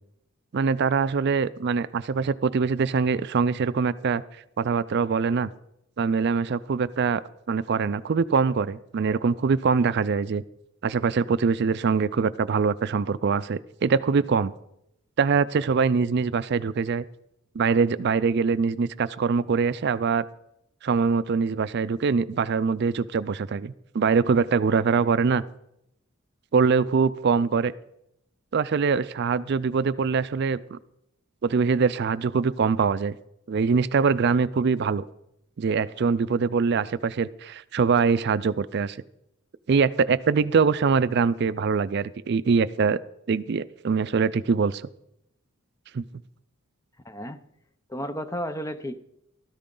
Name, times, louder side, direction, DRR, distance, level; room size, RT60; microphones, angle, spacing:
voice 1, 0.5-4.2 4.6-5.5 6.0-7.2 7.5-10.4 10.8-14.5 15.2-17.0 17.6-20.2 20.8-25.4 26.5-27.7 28.5-30.8 31.4-33.2 33.5-35.1 35.6-39.0 39.7-43.0 43.3-44.9 45.9-46.0, right 5 dB, 50° right, 15 dB, 0.4 m, -23 dB
voice 2, 47.0-47.4 47.9-49.0, equal, 15° left, 11 dB, 0.6 m, -32 dB
14.0 x 13.5 x 3.8 m, 0.79 s
head